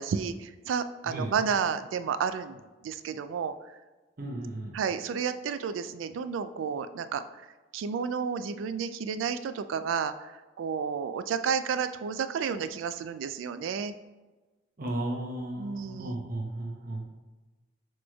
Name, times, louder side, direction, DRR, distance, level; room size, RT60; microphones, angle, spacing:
voice 1, 0.0-3.5 4.7-7.5 7.7-13.9 15.6-16.2, right 6 dB, 90° right, 11 dB, 0.3 m, -31 dB
voice 2, 4.2-4.7 14.8-17.1, right 1 dB, 50° right, 0 dB, 0.7 m, -34 dB
6.1 x 3.1 x 2.3 m, 1.2 s
head